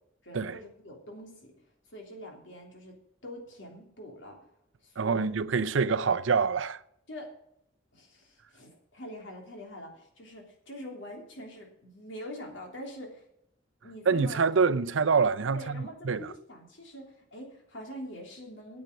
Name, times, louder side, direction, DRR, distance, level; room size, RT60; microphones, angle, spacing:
voice 1, 0.2-1.5 1.9-3.0 3.2-4.4 4.8-5.3 7.1-7.3 7.9-13.2 13.8-14.8 15.5-18.8, equal, 70° left, 3.2 m, -44 dB
voice 2, 5.0-6.8 14.1-16.3, right 5 dB, 90° right, 0.6 m, -26 dB
9.1 x 8.2 x 6.6 m
head